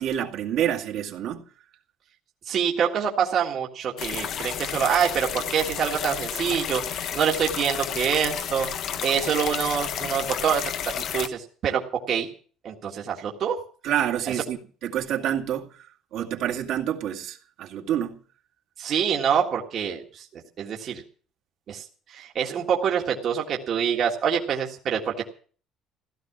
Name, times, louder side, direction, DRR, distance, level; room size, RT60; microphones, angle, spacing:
voice 1, 0.0-1.4 13.8-15.8 16.1-18.2, right 10 dB, 60° right, 2.1 m, -28 dB
voice 2, 2.5-8.7 9.0-10.6 11.1-12.3 12.6-13.6 18.8-21.0 21.7-21.8 22.1-25.3, right 8 dB, 40° right, 1.8 m, -26 dB
sound 1, 4.0-11.3, left 9 dB, 45° left, 0.9 m, -31 dB
16.0 x 13.0 x 6.1 m
cardioid pair, 170°, 0 cm